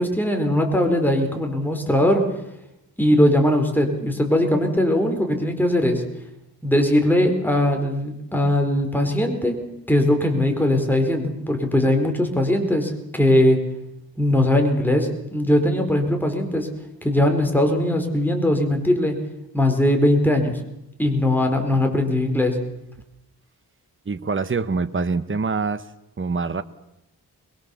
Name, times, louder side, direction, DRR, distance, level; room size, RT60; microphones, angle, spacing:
voice 1, 0.0-2.2 3.0-6.0 6.6-9.6 9.9-13.6 14.2-16.7 17.0-19.2 19.5-20.6 21.0-22.6, left 1 dB, 5° left, 3 dB, 4.2 m, -20 dB
voice 2, 24.1-25.8 26.2-26.6, right 4 dB, 30° right, 11 dB, 1.1 m, -25 dB
23.0 x 22.0 x 7.0 m, 0.88 s
wide cardioid pair, 80°, 39 cm